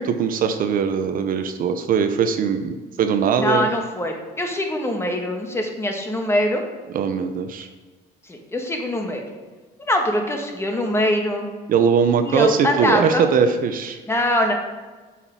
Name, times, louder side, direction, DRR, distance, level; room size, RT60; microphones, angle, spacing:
voice 1, 0.0-3.7 6.9-7.7 11.7-14.0, right 6 dB, 55° right, 8 dB, 0.6 m, -21 dB
voice 2, 3.4-6.6 8.3-9.2 9.9-11.5 12.3-13.2 14.1-14.5, left 1 dB, 15° left, 3 dB, 1.4 m, -23 dB
8.1 x 5.8 x 4.7 m, 1.3 s
cardioid pair, 110°, 17 cm